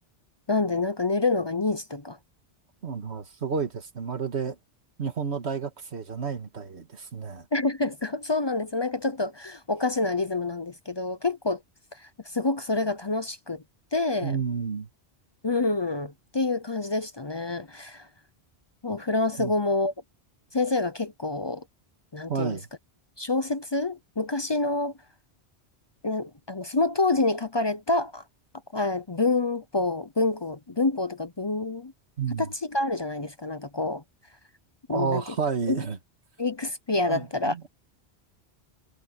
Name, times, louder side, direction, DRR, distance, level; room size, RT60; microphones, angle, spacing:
voice 1, 0.5-2.2 7.5-11.6 11.9-13.6 13.9-14.4 15.4-18.1 18.8-19.9 20.5-21.6 22.1-22.6 23.2-24.9 26.0-28.2 28.7-31.9 32.7-34.0 34.9-35.2 35.7-35.8 36.4-37.5, left 3 dB, 30° left, 0.5 m, -27 dB
voice 2, 2.8-4.6 5.0-7.5 14.2-14.9 19.4-19.5 22.3-22.7 32.2-32.5 34.9-36.0 37.1-37.7, right 6 dB, 75° right, 1.9 m, -31 dB
omnidirectional pair, 1.1 m